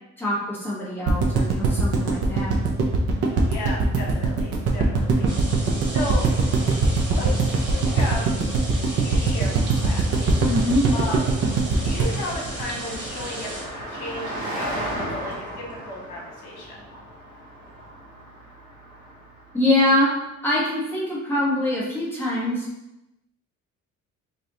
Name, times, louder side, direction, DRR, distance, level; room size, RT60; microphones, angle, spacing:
voice 1, 0.2-2.6 10.4-10.9 19.5-20.1 20.4-22.7, left 1 dB, 5° left, -7 dB, 1.2 m, -24 dB
sound 1, 1.1-13.2 13.5-13.6 13.8-13.9, right 3 dB, 55° right, 0.7 m, -21 dB
voice 2, 3.5-6.2 6.6-6.7 7.1-7.3 7.6-8.3 9.0-10.4 10.9-11.2 11.8-16.8, left 1 dB, 70° left, -2 dB, 1.4 m, -34 dB
Car passing by, 4.4-20.1, right 1 dB, 15° right, 1.3 m, -38 dB
sound 2, 5.3-13.6, right 1 dB, 35° right, 1.3 m, -35 dB
5.0 x 2.6 x 2.8 m, 0.93 s
cardioid pair, 145°, 30 cm